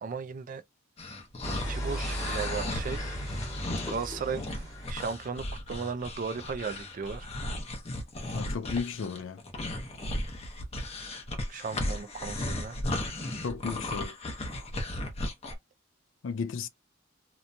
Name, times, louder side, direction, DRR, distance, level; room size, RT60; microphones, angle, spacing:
voice 1, 0.0-0.6 1.6-7.3 11.5-12.8, right 5 dB, 45° right, 0.3 m, -36 dB
sound 1, 1.0-15.5, left 1 dB, 30° left, 0.7 m, -36 dB
sound 2, 1.4-5.3, equal, 15° left, 1.1 m, -36 dB
voice 2, 8.3-9.4 13.4-14.1 16.2-16.7, left 5 dB, 75° left, 0.4 m, -34 dB
2.9 x 2.2 x 2.5 m
head